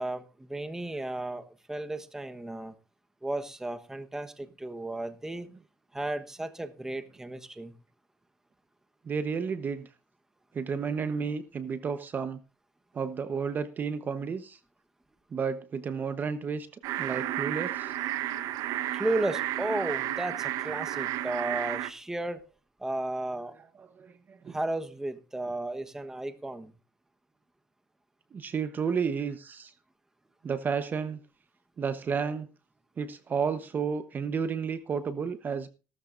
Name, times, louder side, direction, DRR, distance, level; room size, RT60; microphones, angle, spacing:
voice 1, 0.0-2.7 3.2-5.5 5.9-7.7 18.9-22.5 22.8-23.5 24.5-26.7, right 2 dB, 5° right, 8 dB, 1.2 m, -34 dB
voice 2, 9.0-9.9 10.5-12.4 12.9-14.6 15.3-16.7 17.0-17.9 24.0-24.6 28.3-29.7 30.4-31.2 31.8-32.5 33.0-35.7, right 6 dB, 30° right, 11 dB, 1.0 m, -32 dB
sound 1, 16.8-21.9, right 13 dB, 65° right, 1.1 m, -32 dB
17.0 x 13.0 x 2.6 m, 0.32 s
cardioid pair, 130°, 6 cm